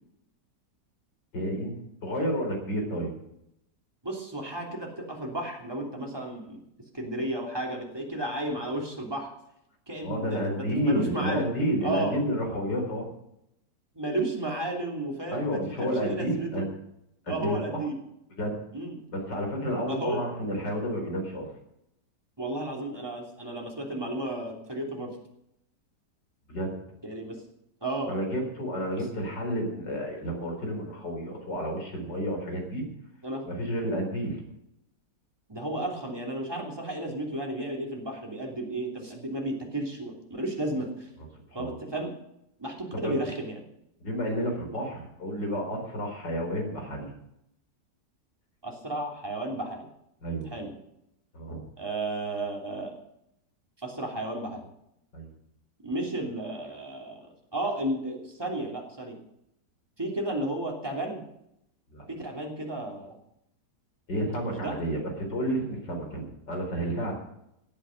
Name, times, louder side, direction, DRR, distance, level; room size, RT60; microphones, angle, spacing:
voice 1, 1.3-3.1 10.0-13.1 15.3-16.7 17.3-17.8 18.4-18.6 19.1-21.5 26.5-26.7 28.1-32.8 33.5-34.4 41.6-41.8 42.9-43.2 44.0-47.1 50.2-50.5 51.3-51.6 55.1-55.3 61.9-62.0 64.1-67.1, equal, 85° left, 2 dB, 4.9 m, -30 dB
voice 2, 4.0-6.6 6.9-9.3 9.9-11.5 11.8-12.2 13.9-16.6 17.3-18.0 18.7-19.0 19.9-20.2 22.4-25.2 27.0-27.4 27.8-28.1 28.9-29.0 33.2-33.5 35.5-41.1 41.5-42.1 42.6-43.6 48.6-49.9 50.5-50.7 51.8-52.9 53.8-54.7 55.8-59.2 60.0-61.2 62.1-63.2 64.4-64.8, right 1 dB, 15° right, 0 dB, 2.9 m, -33 dB
17.0 x 8.7 x 6.4 m, 0.80 s
omnidirectional pair, 1.9 m